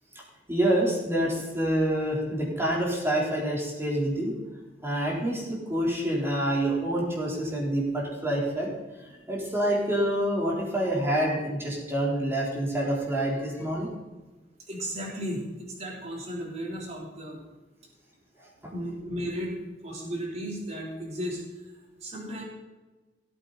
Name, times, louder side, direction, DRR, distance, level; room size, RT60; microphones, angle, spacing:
voice 1, 0.5-4.3 4.8-8.7 9.3-13.9 18.6-18.7, right 1 dB, 15° right, -4 dB, 3.7 m, -27 dB
voice 2, 14.7-17.4 18.7-19.6 19.8-21.4 22.0-22.4, equal, 40° right, -3 dB, 3.4 m, -35 dB
17.0 x 8.5 x 4.1 m, 1.2 s
head